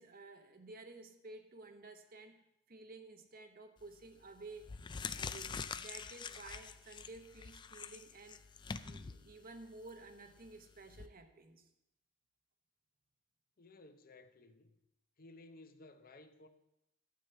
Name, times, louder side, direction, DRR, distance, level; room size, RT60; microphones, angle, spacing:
voice 1, 0.0-4.7 5.2-8.4 8.8-11.7, right 3 dB, 45° right, 0.9 m, -53 dB
sound 1, 3.8-4.1 4.6-11.1, left 5 dB, 20° left, 0.3 m, -46 dB
voice 2, 13.6-14.7 15.2-16.5, left 2 dB, 45° left, 0.7 m, -57 dB
12.0 x 8.1 x 4.4 m
head